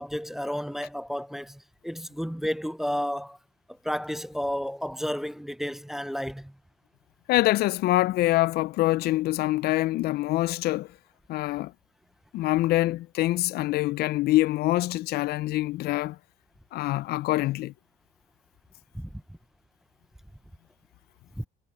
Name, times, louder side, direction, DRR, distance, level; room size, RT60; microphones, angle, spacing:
voice 1, 0.0-3.4 3.8-6.5 18.9-19.2 21.4-21.5, equal, ahead, 0.4 m, -32 dB
voice 2, 7.3-10.9 11.3-11.7 12.3-16.2 16.7-17.7, left 17 dB, 70° left, 0.4 m, -25 dB
cardioid pair, 110°, 17 cm